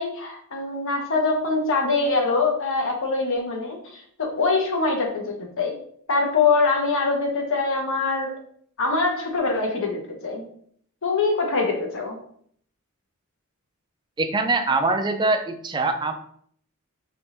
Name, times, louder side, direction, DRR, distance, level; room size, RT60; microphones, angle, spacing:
voice 1, 0.0-5.7 6.1-8.3 8.8-10.4 11.0-12.2, left 3 dB, 60° left, 1 dB, 0.9 m, -24 dB
voice 2, 14.2-16.1, right 3 dB, 20° right, 6 dB, 0.4 m, -23 dB
3.4 x 2.5 x 4.2 m, 0.63 s
head